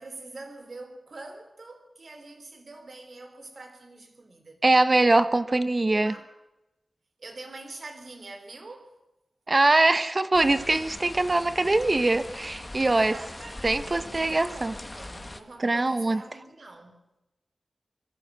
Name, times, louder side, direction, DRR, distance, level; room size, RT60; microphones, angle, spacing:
voice 1, 0.0-4.6 5.5-6.3 7.2-9.0 12.9-17.0, right 2 dB, 60° right, 3.7 m, -45 dB
voice 2, 4.6-6.1 9.5-13.1 13.6-14.7 15.6-16.2, right 2 dB, 35° right, 1.1 m, -22 dB
sound 1, 10.3-15.4, left 1 dB, 20° left, 1.7 m, -41 dB
25.5 x 21.0 x 6.2 m
wide cardioid pair, 85°, 0 cm